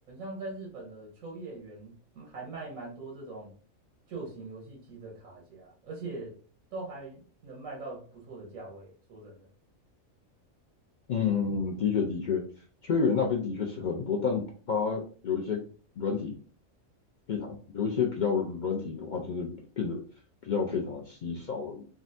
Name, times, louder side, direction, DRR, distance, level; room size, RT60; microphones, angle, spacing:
voice 1, 0.1-3.5 4.1-6.3 6.7-9.5, right 3 dB, 80° right, -3 dB, 1.3 m, -42 dB
voice 2, 11.1-12.4 12.8-15.6 16.0-16.4 17.3-20.0 20.4-21.8, left 6 dB, 70° left, -1 dB, 0.4 m, -29 dB
3.7 x 2.2 x 2.6 m, 0.41 s
omnidirectional pair, 1.4 m